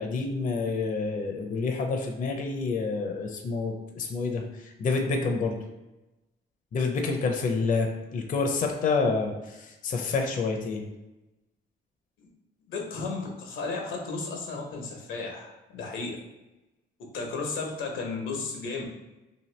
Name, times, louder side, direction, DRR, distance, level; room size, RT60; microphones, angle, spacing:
voice 1, 0.0-5.6 6.7-10.9, left 4 dB, 40° left, 3 dB, 0.5 m, -28 dB
voice 2, 12.7-16.2 17.1-18.8, left 4 dB, 85° left, 0 dB, 0.8 m, -34 dB
2.8 x 2.6 x 3.1 m, 1.0 s
cardioid pair, 90°, 20 cm